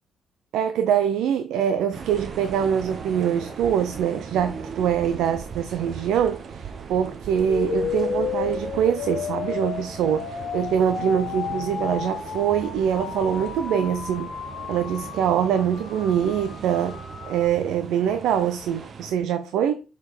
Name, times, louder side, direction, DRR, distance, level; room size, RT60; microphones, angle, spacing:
voice 1, 0.5-14.3 14.7-17.0 17.3-19.8, right 8 dB, 85° right, 0.6 m, -24 dB
sound 1, 1.9-19.1, right 5 dB, 55° right, 1.1 m, -38 dB
sound 2, 7.5-17.5, left 7 dB, 65° left, 1.4 m, -32 dB
6.5 x 4.1 x 4.9 m
cardioid pair, 90°, 0 cm